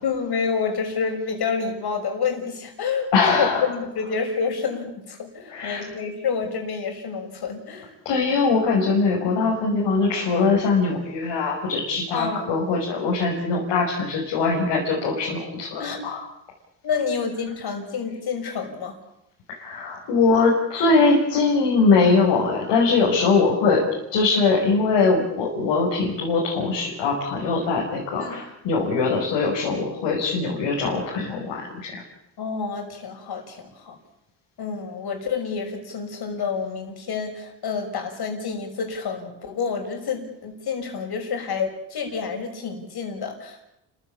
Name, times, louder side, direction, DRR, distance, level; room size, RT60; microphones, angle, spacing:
voice 1, 0.0-7.9 12.1-12.5 15.8-16.0 16.8-18.9 28.2-28.4 32.4-34.0 34.6-43.6, left 5 dB, 60° left, 4 dB, 6.4 m, -28 dB
voice 2, 3.1-3.7 5.5-5.8 8.0-16.2 19.6-23.8 24.1-32.0, left 4 dB, 85° left, -3 dB, 6.0 m, -22 dB
29.5 x 16.0 x 8.8 m, 0.82 s
cardioid pair, 85°, 43 cm